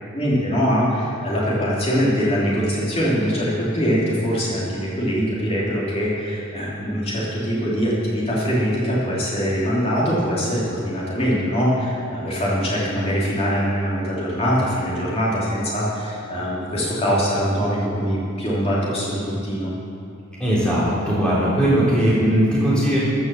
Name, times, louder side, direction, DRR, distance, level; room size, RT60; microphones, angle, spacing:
voice 1, 0.1-19.7, equal, 25° left, -7 dB, 2.8 m, -22 dB
voice 2, 20.4-23.0, right 1 dB, 5° left, -10 dB, 3.4 m, -19 dB
14.0 x 6.3 x 6.8 m, 2.5 s
head